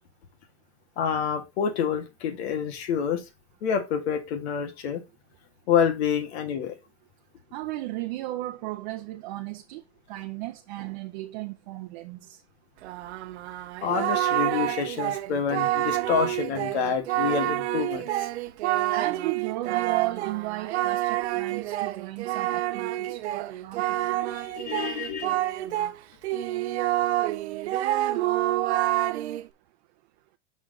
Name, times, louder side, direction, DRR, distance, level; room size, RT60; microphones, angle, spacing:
voice 1, 1.0-3.2 3.6-5.0 5.7-6.7 13.8-18.1 24.5-25.5, left 7 dB, 75° left, 1.8 m, -27 dB
voice 2, 7.5-9.8 10.1-12.4 18.9-24.2, right 17 dB, 45° right, 0.7 m, -35 dB
Singing, 12.8-26.0 26.2-29.5, right 15 dB, 75° right, 0.8 m, -28 dB
6.2 x 5.9 x 3.9 m
supercardioid pair, 170°, 33 cm